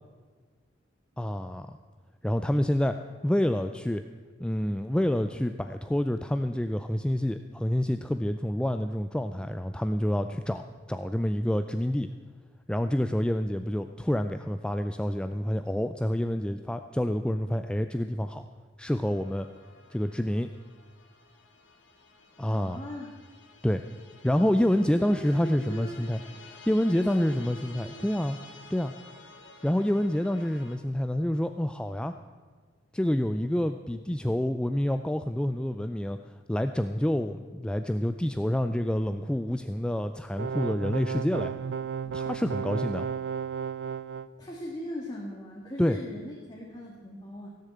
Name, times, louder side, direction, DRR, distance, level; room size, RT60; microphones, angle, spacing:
voice 1, 1.2-1.8 2.2-4.0 4.4-12.1 12.7-18.5 18.8-19.5 19.9-20.5 22.4-22.8 23.6-23.8 24.2-26.2 26.7-28.4 28.7-28.9 29.6-32.1 32.9-41.5 42.1-43.1 45.8-46.0, left 1 dB, 5° left, 8 dB, 0.3 m, -28 dB
sound 1, 19.1-30.8, left 3 dB, 90° left, 1.7 m, -52 dB
voice 2, 22.4-23.1 24.9-26.1 27.1-27.4 27.8-28.0 44.4-47.5, left 1 dB, 20° left, -2 dB, 1.7 m, -39 dB
sound 2, 40.4-44.3, right 6 dB, 65° right, 0.4 m, -33 dB
16.5 x 6.7 x 8.5 m, 1.5 s
head